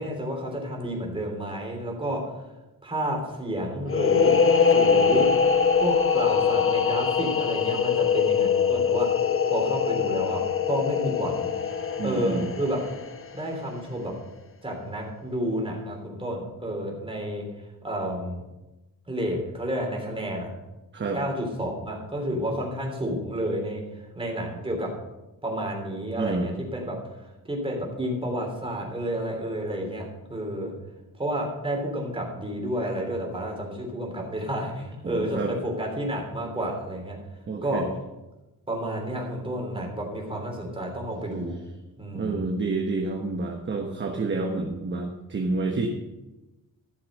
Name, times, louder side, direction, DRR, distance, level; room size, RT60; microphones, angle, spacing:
voice 1, 0.0-2.3 2.8-4.3 4.7-5.3 5.8-9.1 9.5-11.6 12.0-12.8 13.3-14.1 14.6-17.4 17.8-18.4 19.1-20.5 21.1-23.8 24.1-24.9 25.4-27.0 27.5-30.7 31.2-37.2 37.6-37.8 38.7-41.6 42.0-42.4, right 1 dB, 15° right, 0 dB, 3.2 m, -30 dB
sound 1, 3.9-13.4, left 6 dB, 40° left, 1.0 m, -23 dB
voice 2, 12.0-12.5 20.9-21.2 26.2-26.5 35.0-35.5 37.5-37.9 42.1-45.9, right 3 dB, 35° right, 2 dB, 1.2 m, -29 dB
13.5 x 7.1 x 6.2 m, 1.0 s
cardioid pair, 125°, 34 cm